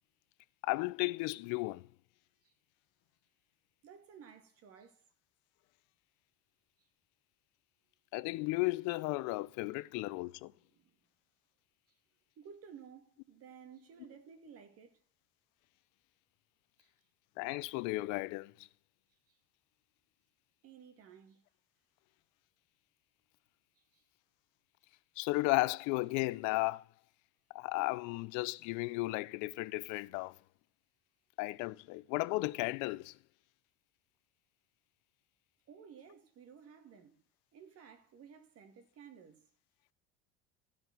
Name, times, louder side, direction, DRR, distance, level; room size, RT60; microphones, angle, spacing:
voice 1, 0.6-1.9 8.1-10.5 17.4-18.7 25.2-26.9 27.5-30.3 31.4-33.1, left 22 dB, 70° left, 0.5 m, -34 dB
voice 2, 3.8-5.0 10.7-11.0 12.4-15.0 16.8-16.9 19.3-19.4 20.6-21.4 23.8-24.0 35.7-37.2 37.5-39.5, right 7 dB, 50° right, 2.3 m, -55 dB
14.5 x 5.2 x 6.1 m
supercardioid pair, 120°, 31 cm